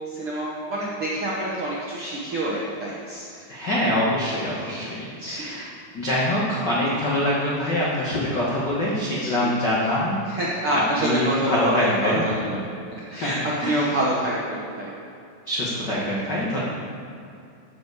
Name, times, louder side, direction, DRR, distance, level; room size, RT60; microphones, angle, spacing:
voice 1, 0.1-3.3 4.5-4.9 5.2-5.6 9.2-9.8 10.3-12.6 12.9-15.0, right 1 dB, 70° right, -5 dB, 1.3 m, -27 dB
voice 2, 3.5-5.7 5.9-10.2 10.7-12.2 13.2-13.9 15.5-16.6, left 1 dB, 85° left, -6 dB, 0.9 m, -24 dB
12.0 x 7.2 x 4.8 m, 2.5 s
omnidirectional pair, 4.2 m